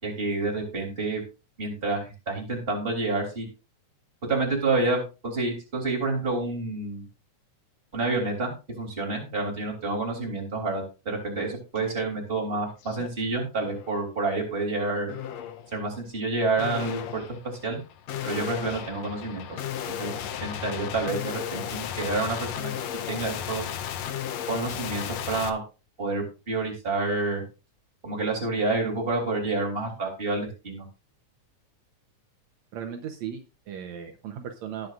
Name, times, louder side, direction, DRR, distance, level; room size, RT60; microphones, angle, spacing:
voice 1, 0.0-1.2 1.6-3.5 4.3-7.0 7.9-15.1 15.7-17.2 17.6-17.8 18.2-19.4 19.9-22.7 23.1-23.6 24.5-25.6 26.0-27.4 28.0-30.8, right 3 dB, 20° right, 0 dB, 3.5 m, -29 dB
sound 1, 11.8-11.9 12.3-13.1 13.6-14.0 15.1-15.7 16.6-25.5, left 9 dB, 70° left, 1.9 m, -35 dB
voice 2, 32.7-34.9, right 8 dB, 70° right, 4 dB, 2.3 m, -37 dB
18.5 x 7.7 x 2.5 m, 0.30 s
omnidirectional pair, 3.4 m